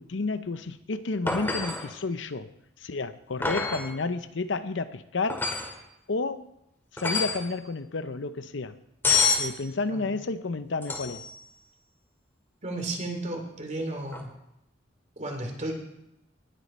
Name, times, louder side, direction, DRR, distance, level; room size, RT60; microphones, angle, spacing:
voice 1, 0.0-2.5 2.8-5.4 6.1-6.5 6.9-8.8 9.4-11.2, left 3 dB, 75° left, 12 dB, 0.7 m, -31 dB
sound 1, 1.3-1.9 3.4-3.9 5.3-5.7 7.0-7.5 9.0-9.5 10.8-11.3 14.1-14.2, left 4 dB, 10° left, 2.1 m, -27 dB
voice 2, 12.6-14.3 15.2-15.7, right 2 dB, 40° right, 2 dB, 2.6 m, -33 dB
19.5 x 8.4 x 4.3 m, 0.83 s
head